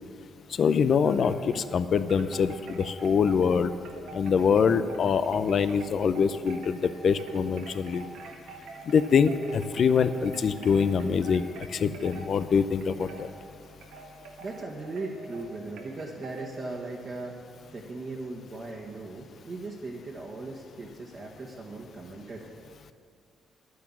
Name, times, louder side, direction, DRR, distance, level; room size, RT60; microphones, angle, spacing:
voice 1, 0.6-3.7 4.1-8.0 8.9-11.5 11.7-13.3, left 6 dB, 55° left, 12 dB, 0.6 m, -24 dB
Wind chime, 1.1-1.7 2.1-16.6, right 3 dB, 85° right, 1.4 m, -46 dB
voice 2, 14.4-17.4 17.7-22.5, right 2 dB, 45° right, -3 dB, 1.6 m, -38 dB
10.5 x 9.5 x 7.5 m, 2.2 s
cardioid pair, 90°, 0 cm